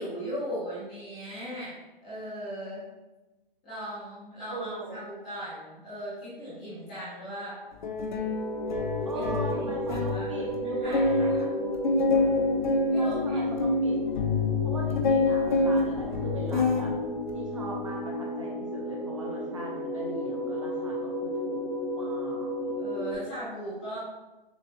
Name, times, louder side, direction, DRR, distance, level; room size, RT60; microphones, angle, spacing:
voice 1, 0.0-1.7 2.0-2.8 3.6-7.6 9.1-12.2 12.9-13.4 22.7-24.0, equal, 5° left, -12 dB, 0.6 m, -38 dB
voice 2, 4.5-5.0 9.0-11.5 13.0-14.0 14.6-16.9 17.3-21.7 22.0-23.0, right 2 dB, 35° right, -2 dB, 0.6 m, -39 dB
sound 1, 7.8-10.2 10.6-10.7 10.9-16.9 17.3-17.7, left 3 dB, 55° left, 0.6 m, -27 dB
sound 2, 8.2-23.1, equal, 30° left, 0.9 m, -33 dB
6.8 x 2.3 x 2.7 m, 1.1 s
hypercardioid pair, 175°, 29 cm